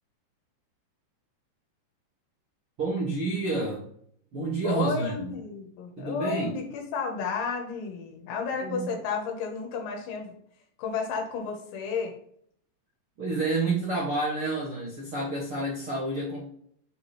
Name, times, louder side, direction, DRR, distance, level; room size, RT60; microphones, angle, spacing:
voice 1, 2.8-3.8 4.3-5.3 6.0-6.5 8.6-8.9 13.2-16.5, right 2 dB, 70° right, -7 dB, 1.3 m, -29 dB
voice 2, 4.6-10.3 10.8-12.1, left 5 dB, 90° left, 1 dB, 3.4 m, -32 dB
8.4 x 3.1 x 4.2 m, 0.65 s
omnidirectional pair, 5.1 m